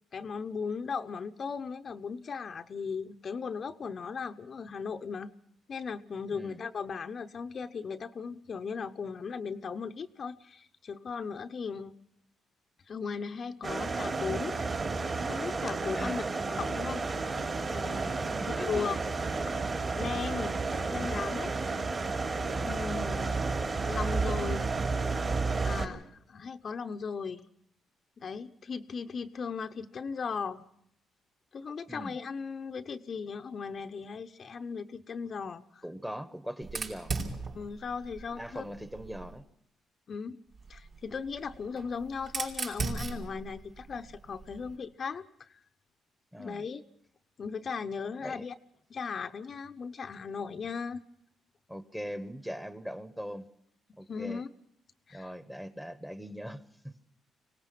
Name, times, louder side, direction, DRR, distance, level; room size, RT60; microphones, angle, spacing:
voice 1, 0.1-5.3 5.7-11.9 12.9-14.6 15.3-16.2 16.6-17.0 17.7-18.3 18.6-19.0 19.5-19.6 20.0-20.6 20.9-21.5 22.6-23.4 23.9-24.7 25.6-26.0 26.3-27.4 28.2-30.6 31.5-35.8 37.6-38.6 40.1-40.4 40.7-45.6 46.4-46.8 47.4-48.5 48.9-51.0 54.1-54.5 55.1-55.3, left 5 dB, 45° left, 7 dB, 0.9 m, -37 dB
voice 2, 6.3-6.6 15.9-16.7 18.3-18.9 22.5-22.8 25.7-26.0 31.9-32.2 35.8-37.2 38.3-39.4 46.3-46.6 48.2-48.4 51.7-53.5 54.0-54.4 55.1-57.0, equal, 5° right, 12 dB, 1.3 m, -41 dB
sound 1, 13.6-25.9, right 3 dB, 40° right, 3.3 m, -31 dB
Fire, 36.6-39.4 40.5-44.8, right 4 dB, 55° right, 5.0 m, -39 dB
25.0 x 18.0 x 6.0 m, 0.75 s
cardioid pair, 90°, 0 cm